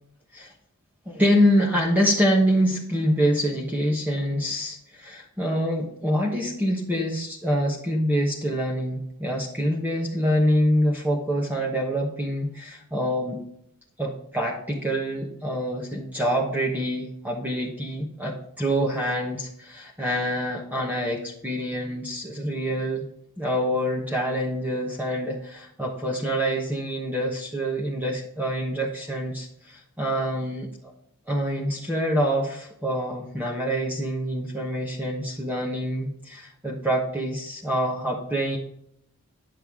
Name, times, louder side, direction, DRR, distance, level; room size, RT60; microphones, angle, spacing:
voice 1, 1.1-13.4 14.0-23.1 23.4-30.9 31.3-38.6, equal, 10° right, -2 dB, 1.1 m, -26 dB
10.0 x 7.7 x 3.6 m, 0.73 s
head